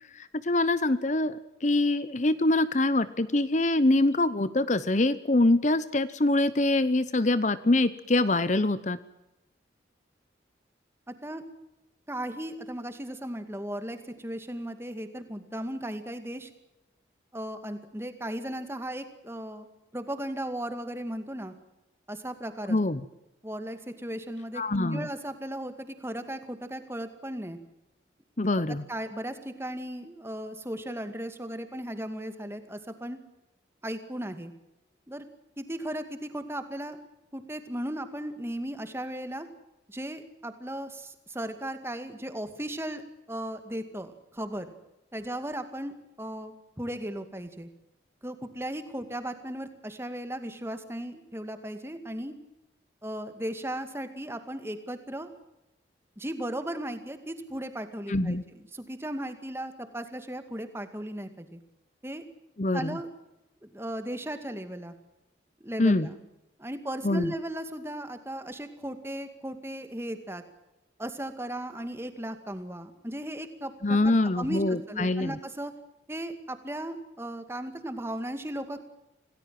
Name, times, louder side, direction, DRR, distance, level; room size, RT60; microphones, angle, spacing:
voice 1, 0.1-9.0 22.7-23.0 24.5-25.1 28.4-28.8 58.1-58.4 62.6-63.0 65.8-66.1 67.0-67.3 73.8-75.4, left 2 dB, 40° left, 15 dB, 0.9 m, -24 dB
voice 2, 11.1-11.4 12.1-16.5 17.3-19.7 19.9-21.5 22.1-22.8 23.4-24.6 24.9-27.6 28.4-28.5 28.9-33.2 33.8-34.5 35.1-35.3 35.6-37.0 37.3-39.5 39.9-43.0 43.3-44.7 45.1-47.7 48.2-52.3 53.0-55.3 56.2-58.4 58.7-61.6 62.0-62.2 62.7-63.1 63.6-64.9 65.6-66.1 66.6-70.4 71.0-75.7 76.1-78.8, right 1 dB, 15° right, 9 dB, 2.2 m, -36 dB
27.5 x 18.5 x 7.7 m, 0.91 s
head